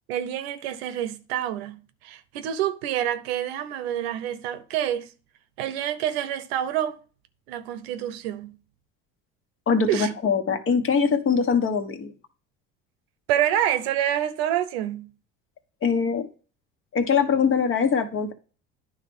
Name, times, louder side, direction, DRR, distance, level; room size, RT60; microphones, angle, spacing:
voice 1, 0.1-5.1 5.6-7.0 7.5-8.6 9.9-10.1 13.3-15.1, right 11 dB, 85° right, 0.8 m, -27 dB
voice 2, 9.7-12.1 15.8-16.3 16.9-18.3, left 6 dB, 45° left, 1.3 m, -22 dB
9.7 x 3.3 x 5.4 m
supercardioid pair, 85°, 30 cm